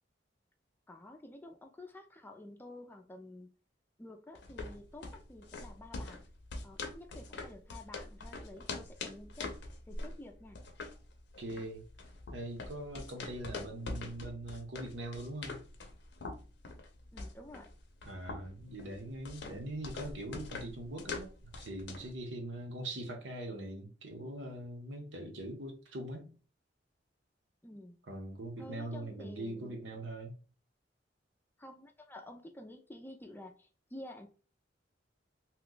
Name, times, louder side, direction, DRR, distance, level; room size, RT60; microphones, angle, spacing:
voice 1, 0.9-3.5 4.0-6.2 6.6-9.5 9.9-10.6 17.1-17.7 27.6-28.0 28.6-29.8 31.6-34.3, left 1 dB, 10° left, 0.4 m, -50 dB
sound 1, 4.4-22.2, left 3 dB, 65° left, 0.6 m, -44 dB
voice 2, 11.4-11.8 12.3-15.6 18.0-26.3 28.1-30.3, right 1 dB, 75° right, 0.9 m, -42 dB
2.9 x 2.2 x 3.7 m
head